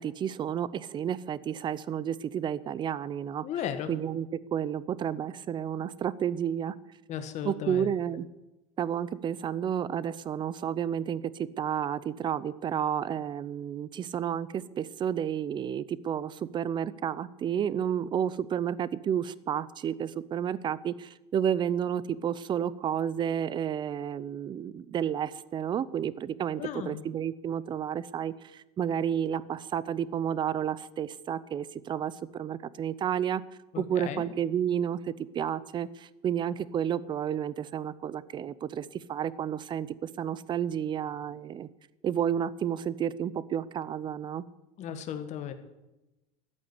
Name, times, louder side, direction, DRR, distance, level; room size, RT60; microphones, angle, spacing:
voice 1, 0.0-3.4 3.9-6.7 7.5-8.3 8.8-33.4 33.8-41.7 42.0-44.4, right 9 dB, 25° right, 19 dB, 0.6 m, -31 dB
voice 2, 3.4-3.9 7.1-8.0 26.5-27.0 33.7-34.2 44.8-45.5, left 9 dB, 40° left, 9 dB, 1.7 m, -35 dB
14.0 x 8.6 x 9.7 m, 1.0 s
supercardioid pair, 145°, 18 cm